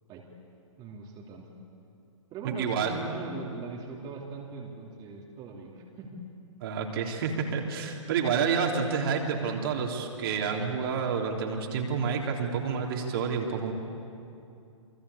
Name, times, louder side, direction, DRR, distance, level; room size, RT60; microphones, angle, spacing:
voice 1, 0.8-1.5 2.3-6.2, right 3 dB, 25° right, -2 dB, 3.2 m, -40 dB
voice 2, 2.4-3.0 6.6-13.7, right 6 dB, 45° right, 0 dB, 3.7 m, -29 dB
29.0 x 22.5 x 8.5 m, 2.6 s
figure-of-eight pair, 130°, 17 cm